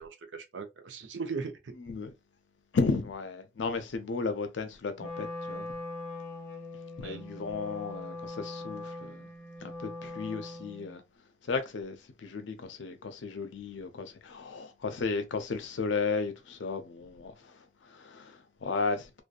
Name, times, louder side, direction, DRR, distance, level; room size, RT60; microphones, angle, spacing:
voice 1, 0.0-1.7 7.0-7.3, right 5 dB, 80° right, 0.6 m, -38 dB
voice 2, 1.8-2.1 2.7-5.7 7.0-9.3 9.6-11.0 11.4-19.2, left 4 dB, 80° left, 0.5 m, -34 dB
Wind instrument woodwind instrument, 5.0-11.0, left 2 dB, 5° left, 0.8 m, -41 dB
2.6 x 2.2 x 2.3 m
head